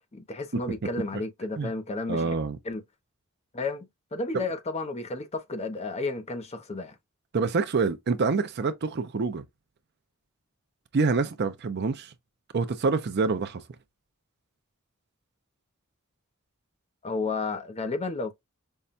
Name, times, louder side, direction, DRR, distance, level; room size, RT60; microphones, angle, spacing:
voice 1, 0.1-2.2 2.6-2.8 3.5-3.9 4.1-6.9 17.0-18.3, left 3 dB, 30° left, 0.6 m, -32 dB
voice 2, 2.1-2.6 4.3-4.5 7.3-9.4 10.9-12.1 12.5-13.6, right 4 dB, 50° right, 0.5 m, -26 dB
5.4 x 2.2 x 2.5 m
head